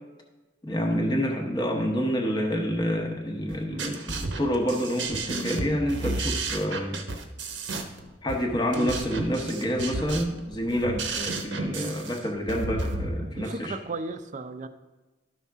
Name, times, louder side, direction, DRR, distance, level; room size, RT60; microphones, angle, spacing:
voice 1, 0.6-7.0 8.2-13.8, equal, 25° left, 0 dB, 0.9 m, -28 dB
sound 1, 3.5-13.1, right 3 dB, 85° right, 0.9 m, -32 dB
voice 2, 3.7-4.0 8.7-8.9 11.6-11.9 13.2-14.7, right 2 dB, 45° right, 10 dB, 0.5 m, -35 dB
12.5 x 5.6 x 3.5 m, 1.2 s
head